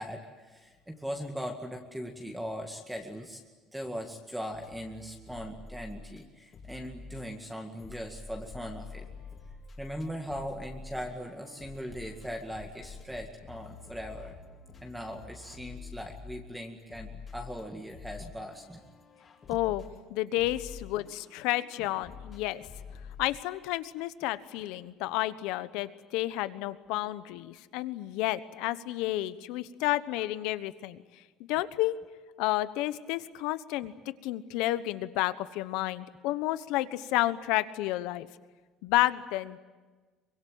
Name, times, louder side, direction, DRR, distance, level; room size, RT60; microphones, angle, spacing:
voice 1, 0.0-3.4 3.7-9.1 9.8-14.3 14.8-18.8, equal, 5° right, 2 dB, 2.1 m, -39 dB
sound 1, 4.5-6.2 6.5-23.2, left 4 dB, 30° left, 4.1 m, -48 dB
voice 2, 19.5-19.8 20.1-22.7 23.2-31.0 31.5-31.9 32.4-33.9 34.2-38.3 38.8-39.6, left 16 dB, 80° left, 14 dB, 1.1 m, -31 dB
24.5 x 22.5 x 9.1 m, 1.3 s
cardioid pair, 125°, 0 cm